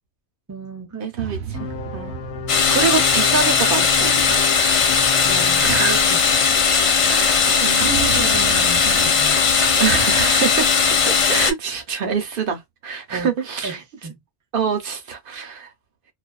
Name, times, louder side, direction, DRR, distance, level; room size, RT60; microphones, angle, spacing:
voice 1, 0.5-1.3 5.2-6.2 7.5-9.9 13.1-13.3 13.6-14.2, right 4 dB, 30° right, 0.3 m, -33 dB
voice 2, 1.0-2.2 2.7-4.5 5.6-6.0 7.0-7.9 9.8-10.7 11.1-13.8 14.5-15.7, right 6 dB, 60° right, 0.8 m, -25 dB
sound 1, 1.1-4.8 7.7-11.5, right 7 dB, 90° right, 0.9 m, -35 dB
sound 2, 1.5-6.6, left 8 dB, 85° left, 0.9 m, -34 dB
sound 3, 2.5-11.5, left 5 dB, 55° left, 0.3 m, -18 dB
2.4 x 2.3 x 2.2 m
omnidirectional pair, 1.1 m